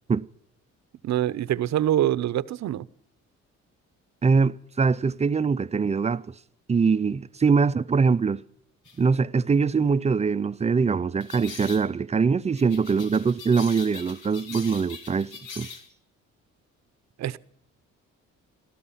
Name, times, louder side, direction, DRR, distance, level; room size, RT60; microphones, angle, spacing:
voice 1, 1.0-2.9 17.2-17.4, right 12 dB, 65° right, 0.7 m, -25 dB
voice 2, 4.2-6.3 6.7-8.4 9.0-15.3 15.6-15.7, right 5 dB, 20° right, 0.5 m, -23 dB
sound 1, 8.9-9.0 11.2-11.9 12.6-15.9, left 5 dB, 85° left, 2.4 m, -42 dB
18.5 x 13.0 x 5.7 m
cardioid pair, 90°, 30 cm